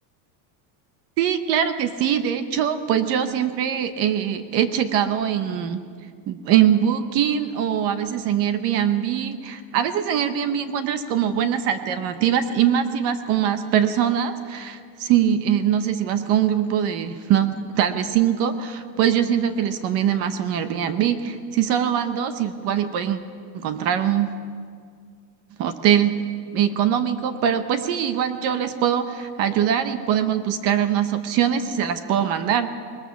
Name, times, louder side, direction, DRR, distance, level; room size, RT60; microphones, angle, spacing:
voice 1, 1.2-5.8 6.3-23.2 23.5-24.3 25.6-26.2 26.5-32.7, right 9 dB, 30° right, 10 dB, 0.7 m, -22 dB
20.5 x 19.5 x 7.0 m, 2.1 s
supercardioid pair, 180°, 47 cm